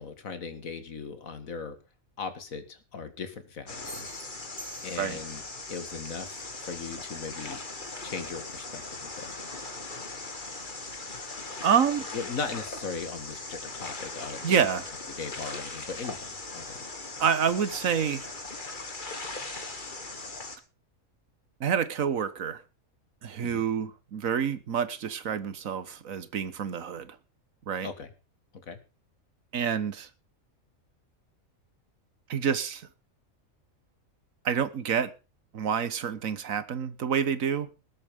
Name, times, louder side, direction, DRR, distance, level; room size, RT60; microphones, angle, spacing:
voice 1, 0.0-1.8 2.2-4.1 4.8-5.4 5.7-7.6 8.0-9.3 12.1-14.6 15.1-16.8 23.4-23.6 27.8-28.1 28.7-28.8, left 5 dB, 80° left, 2.2 m, -38 dB
sound 1, 3.7-20.6, left 3 dB, 35° left, 2.0 m, -39 dB
sound 2, 3.8-5.5, right 2 dB, 5° left, 3.4 m, -46 dB
voice 2, 11.6-12.0 14.4-14.8 17.2-18.3 21.6-22.6 23.2-27.2 27.7-27.9 29.5-30.1 32.3-32.9 34.4-35.1 35.5-37.7, right 7 dB, 80° right, 1.5 m, -28 dB
19.5 x 8.4 x 5.3 m
omnidirectional pair, 1.4 m